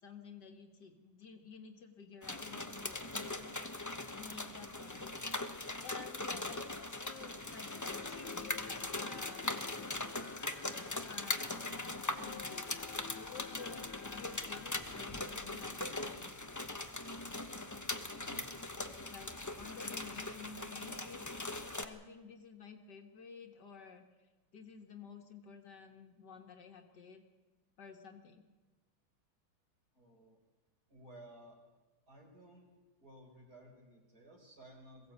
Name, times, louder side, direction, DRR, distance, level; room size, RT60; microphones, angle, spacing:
voice 1, 0.0-3.6 4.1-5.2 5.8-9.7 11.1-16.3 19.1-21.3 21.8-24.1 24.5-27.2 27.8-28.5, left 5 dB, 55° left, 5 dB, 2.0 m, -52 dB
sound 1, 2.2-21.8, left 2 dB, 20° left, 0.4 m, -41 dB
sound 2, 7.2-16.7, left 8 dB, 85° left, 1.8 m, -53 dB
voice 2, 18.1-19.3 29.9-30.4 30.9-31.6 32.1-32.7 33.0-35.1, right 1 dB, 45° right, 1 dB, 4.9 m, -57 dB
22.5 x 15.5 x 8.3 m, 1.2 s
omnidirectional pair, 2.2 m